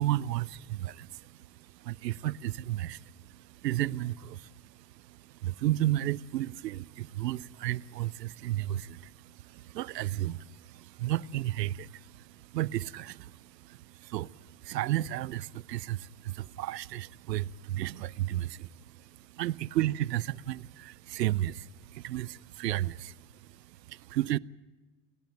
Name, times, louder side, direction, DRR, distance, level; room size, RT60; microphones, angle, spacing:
voice 1, 0.0-24.4, right 14 dB, 80° right, 0.7 m, -33 dB
29.5 x 12.0 x 9.1 m
hypercardioid pair, 85°, 48 cm